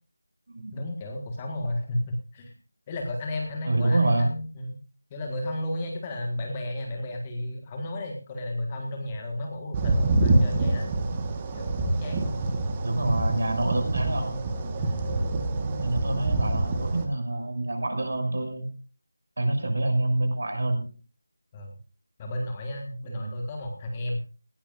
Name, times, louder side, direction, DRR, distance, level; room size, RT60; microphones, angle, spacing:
voice 1, 0.7-2.5 2.9-4.8 5.1-10.9 11.5-12.4 14.8-15.1 19.7-19.8 21.5-21.7 22.2-24.2, left 1 dB, 15° left, 2 dB, 1.7 m, -33 dB
voice 2, 3.6-4.3 12.8-14.4 15.8-18.7 19.4-20.9 23.1-23.3, right 2 dB, 45° right, 5 dB, 6.4 m, -26 dB
sound 1, 9.7-17.1, right 2 dB, 15° right, 1.4 m, -26 dB
18.5 x 18.5 x 2.5 m, 0.37 s
figure-of-eight pair, 165°, 0 cm